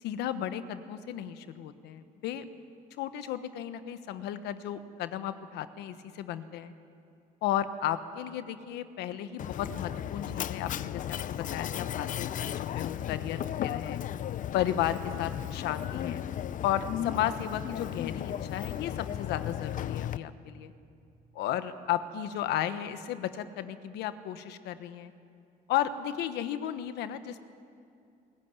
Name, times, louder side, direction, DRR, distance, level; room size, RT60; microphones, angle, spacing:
voice 1, 0.0-2.4 3.0-6.7 7.4-14.0 14.5-16.2 16.6-20.7 21.3-25.1 25.7-27.5, left 11 dB, 85° left, 11 dB, 1.2 m, -34 dB
Mechanisms, 9.4-20.2, left 11 dB, 50° left, 0.6 m, -35 dB
23.0 x 15.5 x 9.5 m, 2.5 s
cardioid pair, 110°, 17 cm